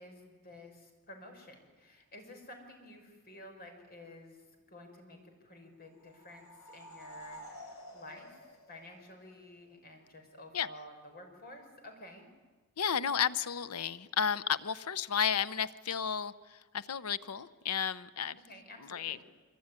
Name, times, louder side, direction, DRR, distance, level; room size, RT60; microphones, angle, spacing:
voice 1, 0.0-4.4 4.7-12.3 18.5-19.2, left 1 dB, 45° left, 4 dB, 5.9 m, -52 dB
sound 1, 5.9-9.5, equal, 65° left, 5.7 m, -51 dB
voice 2, 12.8-18.4 18.8-19.2, left 7 dB, 85° left, 15 dB, 0.8 m, -33 dB
24.5 x 24.5 x 9.9 m, 1.3 s
head